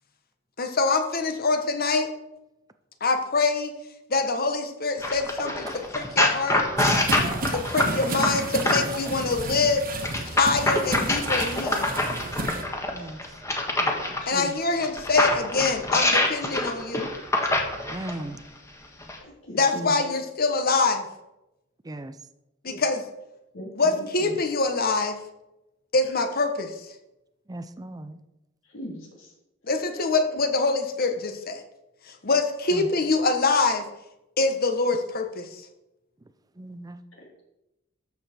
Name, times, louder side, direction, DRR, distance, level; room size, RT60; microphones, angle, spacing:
voice 1, 0.6-2.1 3.0-3.7 4.1-6.6 7.5-9.8 10.2-11.9 14.3-17.1 19.5-21.0 22.6-23.0 23.7-25.2 25.9-26.7 29.7-31.6 32.2-33.8 34.4-35.6, left 3 dB, 50° left, 7 dB, 1.3 m, -24 dB
sound 1, 5.0-9.1 10.0-14.2 14.8-18.2 19.0-19.2, left 2 dB, 15° left, 1.4 m, -25 dB
sound 2, 6.8-12.6, right 2 dB, 45° right, 1.5 m, -31 dB
voice 2, 12.9-13.2 17.9-18.4 21.9-22.1 27.5-28.2 32.7-32.9 36.6-37.0, right 1 dB, 20° right, 10 dB, 0.5 m, -37 dB
voice 3, 13.8-14.7 19.2-19.9 22.7-22.8 23.5-24.4 28.7-29.3, left 1 dB, 70° left, -1 dB, 3.3 m, -38 dB
13.0 x 7.0 x 4.4 m, 0.93 s
head